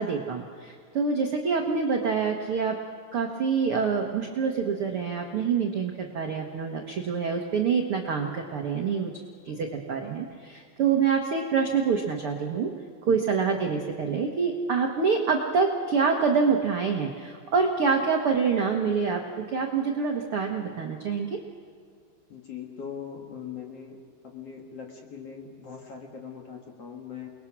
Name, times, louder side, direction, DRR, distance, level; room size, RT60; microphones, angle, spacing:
voice 1, 0.0-2.8 3.1-9.1 9.4-12.7 13.1-21.4, right 5 dB, 65° right, 2 dB, 1.3 m, -26 dB
voice 2, 22.3-24.0 24.2-27.3, left 7 dB, 50° left, 1 dB, 2.2 m, -40 dB
29.0 x 20.5 x 6.1 m, 2.2 s
omnidirectional pair, 4.4 m